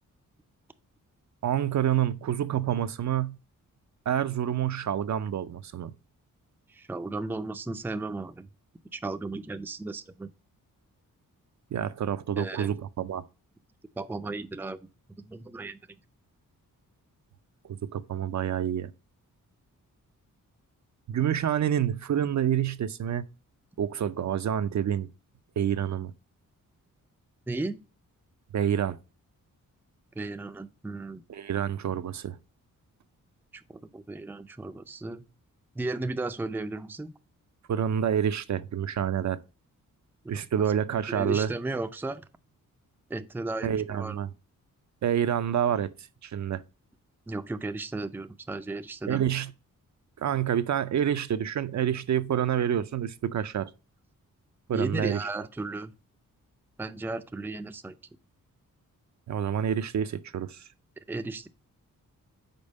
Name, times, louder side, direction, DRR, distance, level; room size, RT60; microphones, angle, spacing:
voice 1, 1.4-3.4 4.1-5.9 11.7-13.2 17.6-18.9 21.1-23.2 23.8-25.1 25.6-26.1 28.5-29.0 31.3-32.4 37.7-39.4 40.3-41.5 43.6-44.3 45.0-46.6 49.1-49.5 50.2-53.7 54.7-55.2 59.3-60.7, right 9 dB, 55° right, 0.5 m, -28 dB
voice 2, 6.7-8.5 8.9-10.3 12.3-12.8 14.0-14.8 15.2-15.8 27.5-27.8 30.2-31.2 33.5-35.2 35.7-37.1 40.2-40.4 41.1-42.2 43.1-44.2 47.3-49.3 54.7-55.9 56.8-57.9 61.1-61.5, right 2 dB, 5° right, 0.4 m, -35 dB
5.3 x 4.3 x 5.2 m
cardioid pair, 85°, 34 cm